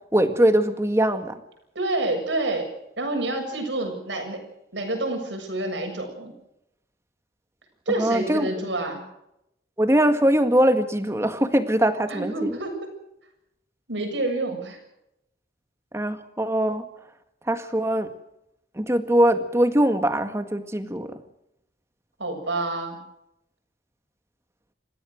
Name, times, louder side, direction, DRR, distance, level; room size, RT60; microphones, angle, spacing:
voice 1, 0.1-1.4 8.0-8.5 9.8-12.6 15.9-16.9 17.5-18.1 18.8-21.2, right 1 dB, 15° right, 8 dB, 1.8 m, -22 dB
voice 2, 1.8-2.7 3.0-4.4 4.7-6.3 7.9-9.0 12.1-12.9 13.9-14.8 22.2-23.0, right 2 dB, 80° right, 4 dB, 7.3 m, -28 dB
28.5 x 16.0 x 6.6 m, 0.82 s
head